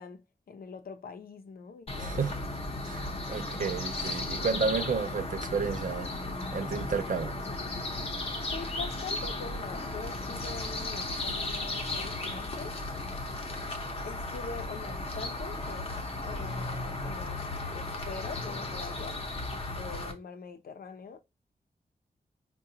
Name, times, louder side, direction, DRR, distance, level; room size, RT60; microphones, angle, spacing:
voice 1, 0.0-2.5 8.5-12.8 14.0-15.9 16.2-17.4 17.7-19.2 19.5-21.2, left 5 dB, 70° left, 0.6 m, -43 dB
sound 1, 1.9-20.1, left 2 dB, 40° left, 0.7 m, -35 dB
voice 2, 2.0-2.3 2.8-6.1 6.5-7.3, right 5 dB, 55° right, 0.5 m, -31 dB
4.7 x 2.3 x 2.7 m
wide cardioid pair, 120°, 16 cm